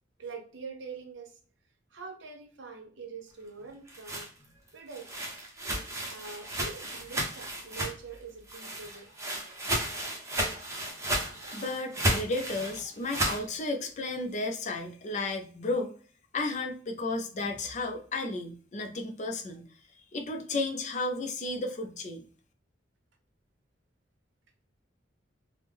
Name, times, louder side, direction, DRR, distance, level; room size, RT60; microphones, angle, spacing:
voice 1, 0.2-1.4 1.9-4.3 4.7-5.5 6.1-9.1 10.9-11.7 12.0-12.1, right 5 dB, 70° right, 0.7 m, -45 dB
sound 1, 3.7-8.2 8.5-13.4, right 1 dB, 15° right, 0.6 m, -33 dB
voice 2, 11.5-15.9 16.3-19.6 20.1-22.2, left 2 dB, 40° left, 0.5 m, -33 dB
3.4 x 2.1 x 3.4 m
head